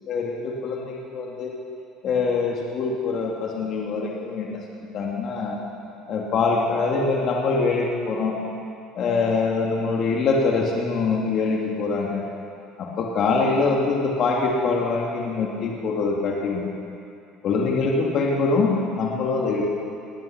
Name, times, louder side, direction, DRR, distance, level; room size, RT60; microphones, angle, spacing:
voice 1, 0.1-1.5 2.0-5.6 6.1-8.3 9.0-12.3 12.8-16.6 17.4-19.7, left 4 dB, 50° left, -2 dB, 2.5 m, -24 dB
19.5 x 9.5 x 6.0 m, 2.5 s
supercardioid pair, 105°, 0 cm